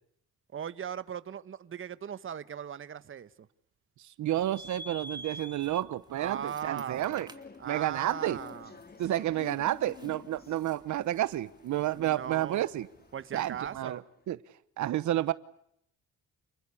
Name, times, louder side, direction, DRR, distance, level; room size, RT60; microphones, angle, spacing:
voice 1, 0.5-3.5 6.2-7.3 7.6-8.7 12.0-12.7 13.1-14.0, right 8 dB, 45° right, 1.2 m, -38 dB
voice 2, 4.0-7.3 7.7-8.4 9.0-12.9 13.3-14.0 14.3-14.4 14.8-15.3, right 13 dB, 75° right, 1.0 m, -30 dB
sound 1, 4.3-13.8, right 1 dB, 15° right, 2.6 m, -50 dB
sound 2, 7.1-14.2, left 5 dB, 30° left, 2.2 m, -51 dB
29.5 x 19.5 x 8.5 m
cardioid pair, 90°, 30 cm